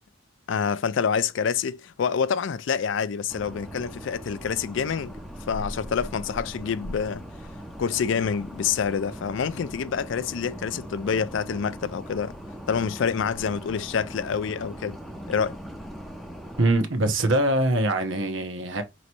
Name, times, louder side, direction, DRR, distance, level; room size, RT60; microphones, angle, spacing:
voice 1, 0.5-5.2 5.5-7.2 7.8-12.3 12.7-15.0 15.3-15.6, left 6 dB, 65° left, 0.4 m, -27 dB
sound 1, 3.3-16.7, equal, ahead, 0.6 m, -40 dB
voice 2, 16.6-18.8, right 1 dB, 75° right, 1.0 m, -23 dB
5.2 x 3.0 x 2.9 m
head